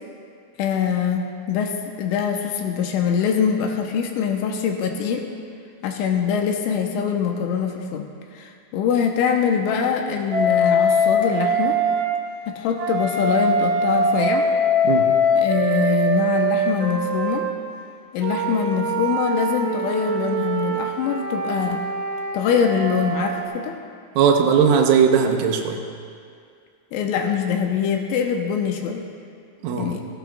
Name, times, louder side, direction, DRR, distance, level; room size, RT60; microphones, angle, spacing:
voice 1, 0.6-5.3 5.8-8.1 8.3-11.8 12.5-14.5 15.4-17.5 18.1-21.9 22.3-23.8 26.9-29.1 29.8-30.0, left 7 dB, 85° left, 3 dB, 3.1 m, -23 dB
Wind instrument woodwind instrument, 10.3-12.1 12.8-17.5 18.2-23.4, equal, 60° right, 2.3 m, -22 dB
voice 2, 24.2-25.8 29.6-29.9, right 6 dB, 85° right, 3 dB, 3.4 m, -18 dB
17.5 x 15.5 x 2.4 m, 2.3 s
omnidirectional pair, 5.6 m